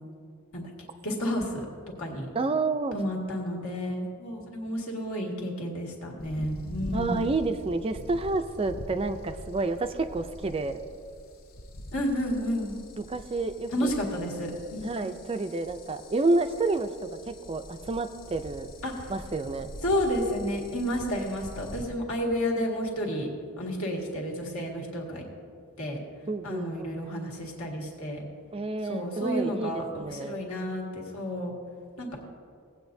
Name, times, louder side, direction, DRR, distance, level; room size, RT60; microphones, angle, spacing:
voice 1, 1.0-1.7 2.0-2.3 2.9-7.3 11.9-12.7 13.7-15.0 18.8-19.1 19.8-23.3 23.6-25.3 25.8-26.0 26.4-28.2 28.8-31.5 32.0-32.3, equal, 70° left, -1 dB, 1.9 m, -31 dB
voice 2, 2.3-3.0 6.9-10.8 13.0-13.9 14.8-18.7 19.1-19.7 26.3-26.9 28.5-30.4, right 3 dB, 25° right, 8 dB, 0.4 m, -29 dB
sound 1, 6.2-21.8, left 1 dB, 40° left, 0.6 m, -44 dB
17.5 x 8.5 x 2.7 m, 2.3 s
head